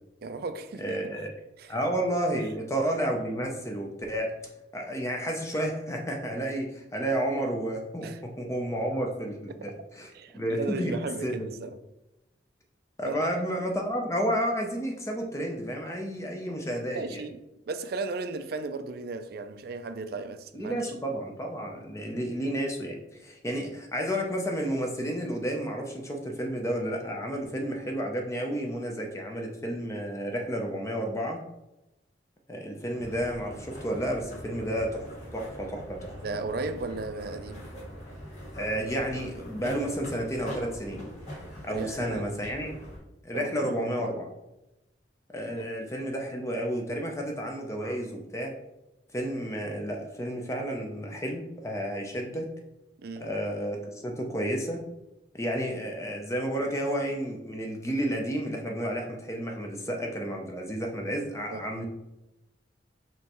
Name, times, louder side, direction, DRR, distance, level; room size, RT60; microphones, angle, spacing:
voice 1, 0.2-1.1 1.6-1.7 8.0-8.2 10.1-11.8 13.0-13.2 16.9-17.4 17.7-20.9 36.2-37.7 41.7-42.3 43.3-44.1 45.5-45.6 53.0-53.3 61.5-61.7, right 3 dB, 55° right, 0.4 m, -36 dB
voice 2, 0.8-1.3 1.7-4.3 4.7-11.4 13.0-17.2 20.5-31.4 32.5-36.2 38.5-41.0 41.6-42.8 43.2-44.3 45.3-48.5 49.1-52.5 53.2-54.8 55.3-61.8, equal, 15° left, 0.5 m, -31 dB
sound 1, 33.0-43.0, equal, 40° left, 1.6 m, -43 dB
5.5 x 3.1 x 3.0 m
head